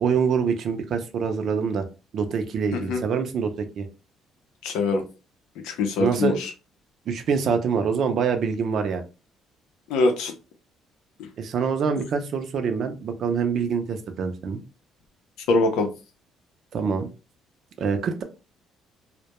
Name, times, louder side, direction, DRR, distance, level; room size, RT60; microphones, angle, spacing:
voice 1, 0.0-1.9 2.1-3.9 6.0-6.4 7.1-9.0 11.4-14.6 16.7-17.1 17.8-18.2, right 6 dB, 50° right, 7 dB, 0.4 m, -25 dB
voice 2, 4.6-5.0 5.6-6.5 9.9-10.3 11.2-11.3 15.5-15.9, left 3 dB, 90° left, 5 dB, 0.5 m, -23 dB
2.2 x 2.1 x 2.8 m, 0.30 s
cardioid pair, 150°, 0 cm